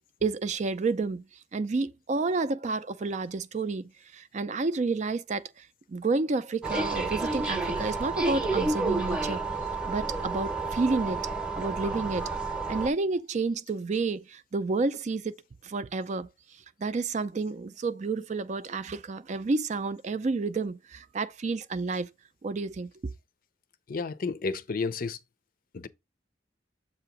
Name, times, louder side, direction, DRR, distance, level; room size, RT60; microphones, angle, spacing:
voice 1, 0.2-1.2 1.5-9.4 9.8-11.3 11.5-12.3 12.7-15.3 15.6-16.3 16.8-22.1 22.4-23.1, right 3 dB, 40° right, 0.4 m, -30 dB
sound 1, 6.6-12.9, right 3 dB, 5° right, 0.8 m, -30 dB
voice 2, 23.9-25.2 25.7-25.9, left 4 dB, 50° left, 0.5 m, -31 dB
7.5 x 2.9 x 5.9 m
head